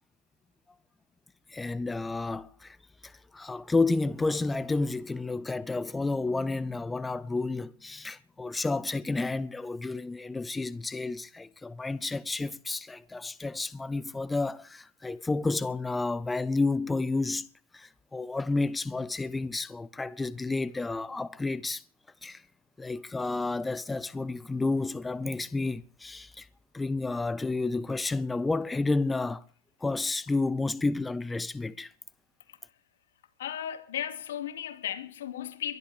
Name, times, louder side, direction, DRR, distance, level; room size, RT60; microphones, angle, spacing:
voice 1, 1.5-2.8 3.0-21.8 22.2-22.4 22.8-26.5 26.7-29.4 29.8-31.9, left 3 dB, 10° left, 0.6 m, -31 dB
voice 2, 33.4-35.8, left 10 dB, 80° left, 2.5 m, -35 dB
22.5 x 11.5 x 5.0 m
hypercardioid pair, 130°, 0 cm